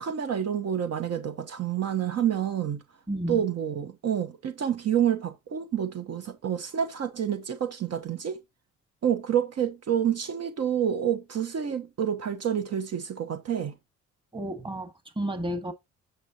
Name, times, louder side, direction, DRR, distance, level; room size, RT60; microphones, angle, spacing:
voice 1, 0.0-2.8 3.3-8.4 9.0-13.7, right 9 dB, 55° right, 1.2 m, -28 dB
voice 2, 3.1-3.4 14.3-15.7, right 1 dB, 15° right, 2.0 m, -32 dB
9.0 x 6.8 x 2.9 m
cardioid pair, 90°, 30 cm